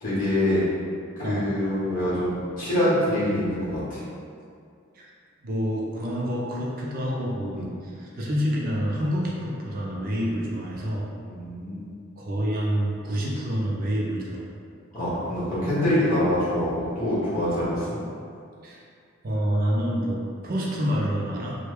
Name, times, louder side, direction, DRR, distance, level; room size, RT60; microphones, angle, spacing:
voice 1, 0.0-0.6 1.2-4.0 7.5-7.6 10.3-10.4 11.3-11.9 14.9-17.9, left 1 dB, 40° left, -11 dB, 1.3 m, -25 dB
voice 2, 5.4-11.1 12.2-14.4 18.6-18.8 19.2-21.6, equal, 45° right, -4 dB, 0.4 m, -27 dB
3.2 x 2.1 x 3.2 m, 2.3 s
head